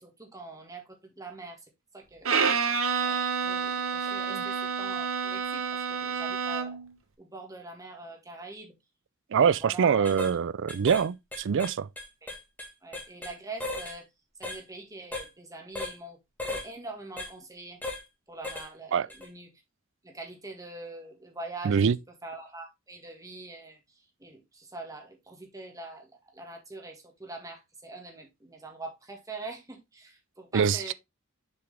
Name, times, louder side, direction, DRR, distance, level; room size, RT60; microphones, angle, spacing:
voice 1, 0.0-1.6 1.9-2.3 3.0-6.8 7.2-8.7 9.3-10.1 12.2-12.3 12.8-14.1 14.4-16.2 16.5-17.8 18.3-19.5 20.0-21.8 22.2-23.8 24.2-30.9, right 3 dB, 15° right, 1.9 m, -43 dB
Bowed string instrument, 2.2-6.9, right 6 dB, 80° right, 1.1 m, -29 dB
voice 2, 9.3-11.9 18.9-19.1 21.6-22.0 30.5-30.9, right 7 dB, 65° right, 0.4 m, -24 dB
sound 1, 9.4-9.6 10.0-10.3 10.7-11.1 11.3-13.3 13.6-14.0 14.4-14.6 15.1-15.3 15.8-16.0 16.4-16.7 17.2-17.3 17.8-18.0 18.4-18.7 19.1-19.3, left 2 dB, 10° left, 1.7 m, -36 dB
6.9 x 4.9 x 3.5 m
head